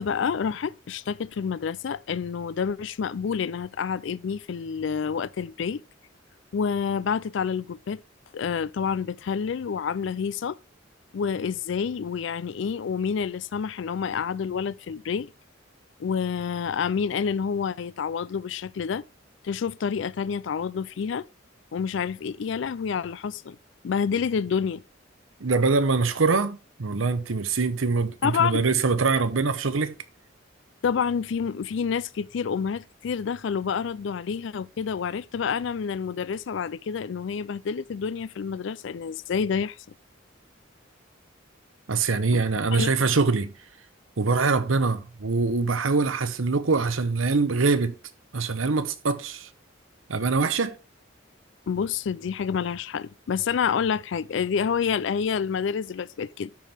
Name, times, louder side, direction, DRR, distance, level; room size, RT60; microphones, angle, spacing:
voice 1, 0.0-5.8 6.5-8.0 8.3-10.6 11.1-15.3 16.0-19.0 19.4-21.3 21.7-23.6 23.8-24.8 28.2-28.6 30.8-39.8 42.3-42.4 42.7-43.0 51.7-56.5, left 6 dB, 65° left, 0.4 m, -28 dB
voice 2, 25.4-29.9 41.9-43.5 44.2-47.9 48.3-49.5 50.1-50.8, right 4 dB, 90° right, 0.9 m, -24 dB
13.0 x 4.5 x 3.4 m
head